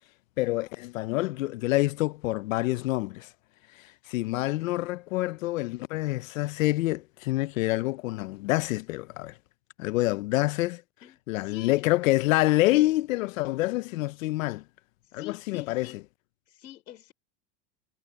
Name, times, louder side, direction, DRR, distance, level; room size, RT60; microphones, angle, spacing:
voice 1, 0.4-3.3 4.1-9.3 9.8-10.8 11.3-14.6 15.1-15.9, left 18 dB, 55° left, 0.6 m, -27 dB
voice 2, 11.0-11.9 15.2-16.0 16.5-17.1, left 14 dB, 90° left, 5.2 m, -43 dB
supercardioid pair, 160°, 49 cm